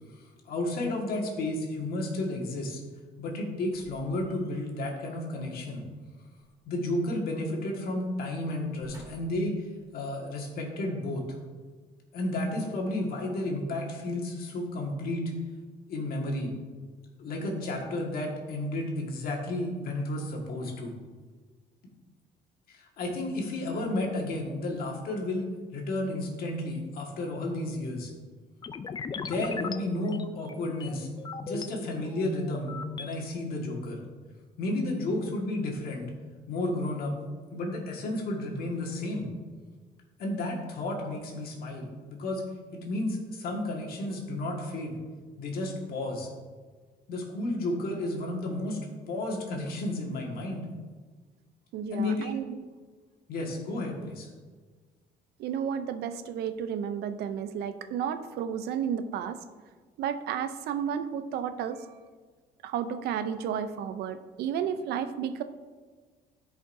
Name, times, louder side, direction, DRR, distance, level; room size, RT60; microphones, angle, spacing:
voice 1, 0.2-2.8 3.2-5.8 6.6-9.7 9.9-11.4 12.1-15.3 15.9-16.5 17.2-20.9 22.7-28.1 29.1-31.1 31.4-34.0 34.6-36.0 36.5-37.1 37.5-39.3 40.2-42.4 42.7-45.0 45.4-46.3 47.1-48.8 49.1-50.7 51.9-52.4 53.3-54.3, left 1 dB, 60° left, -1 dB, 1.7 m, -32 dB
sound 1, 3.7-4.8 6.4-7.5 7.8-8.0 8.6-9.5 10.2-10.3, right 1 dB, 20° right, 2.1 m, -54 dB
sound 2, 28.6-31.7 32.2-33.1, left 5 dB, 25° left, 0.4 m, -38 dB
voice 2, 51.7-52.7 55.4-59.4 60.0-61.9 62.6-65.4, right 8 dB, 75° right, 10 dB, 0.5 m, -32 dB
13.0 x 5.2 x 2.7 m, 1.5 s
cardioid pair, 110°, 17 cm